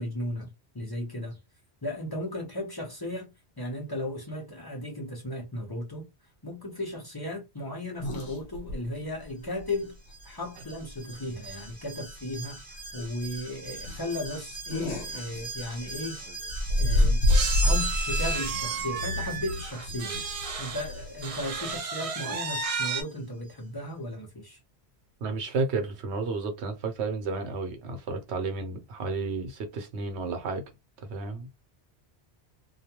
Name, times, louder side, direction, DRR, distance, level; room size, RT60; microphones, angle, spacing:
voice 1, 0.0-1.4 1.8-3.3 3.6-6.1 6.4-10.0 10.2-16.2 16.8-17.2 17.6-20.2 20.6-24.6, left 1 dB, 25° left, 0.7 m, -35 dB
sound 1, 8.0-8.8 9.2-9.3 9.6-9.7 10.9-11.2 11.5-11.7 12.2-12.3 12.6-12.7 13.1-13.3 13.8-16.0 16.5-21.8, left 1 dB, 75° left, 1.2 m, -28 dB
Alarm, 9.7-23.2 23.5-23.6, right 2 dB, 15° right, 1.0 m, -43 dB
sound 2, 15.8-15.9 16.1-16.3 17.3-20.9 21.2-23.0, right 4 dB, 55° right, 0.4 m, -32 dB
voice 2, 25.2-30.6 31.0-31.5, right 3 dB, 80° right, 1.0 m, -32 dB
2.3 x 2.2 x 2.8 m
omnidirectional pair, 1.1 m